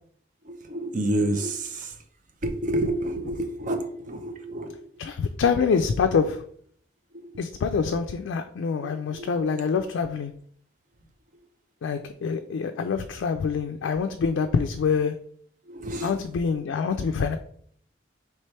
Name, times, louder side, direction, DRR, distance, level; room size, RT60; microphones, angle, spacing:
voice 1, 0.5-1.9 2.4-4.8 8.8-9.3 15.7-16.1, right 1 dB, 40° right, 0.5 m, -29 dB
voice 2, 5.0-6.4 7.4-10.3 11.8-15.2 16.0-17.4, left 5 dB, 75° left, 0.3 m, -25 dB
3.3 x 3.2 x 4.3 m
head